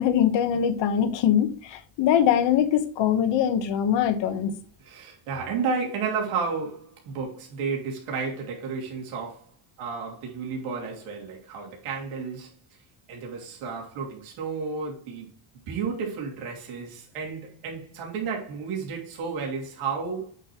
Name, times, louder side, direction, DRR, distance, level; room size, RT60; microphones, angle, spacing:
voice 1, 0.0-4.5, left 9 dB, 60° left, 1.2 m, -22 dB
voice 2, 4.8-9.5 9.8-12.8 13.1-15.3 15.7-20.3, right 5 dB, 85° right, 2.9 m, -32 dB
8.4 x 6.6 x 3.0 m
cardioid pair, 150°, 50 cm